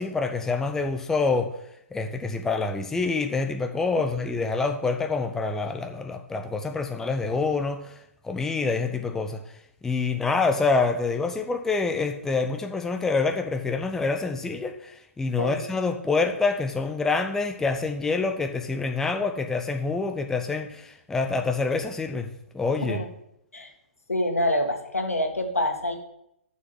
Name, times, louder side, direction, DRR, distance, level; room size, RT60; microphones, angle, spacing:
voice 1, 0.0-1.5 1.9-7.9 8.2-9.4 9.8-22.3 22.5-23.0, left 4 dB, 5° left, 6 dB, 0.6 m, -26 dB
voice 2, 24.1-26.0, left 1 dB, 80° left, 5 dB, 1.8 m, -26 dB
7.4 x 6.3 x 7.8 m, 0.77 s
figure-of-eight pair, 125°, 8 cm